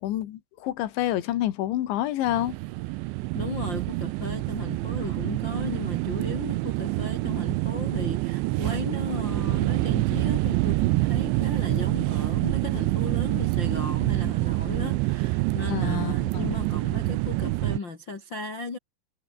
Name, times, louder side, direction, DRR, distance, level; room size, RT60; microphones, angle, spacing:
voice 1, 0.0-2.6 5.1-5.2 15.7-16.6, left 13 dB, 70° left, 3.7 m, -28 dB
sound 1, 2.3-17.8, right 21 dB, 80° right, 2.7 m, -26 dB
voice 2, 3.0-18.8, left 4 dB, 35° left, 2.1 m, -36 dB
omnidirectional pair, 5.8 m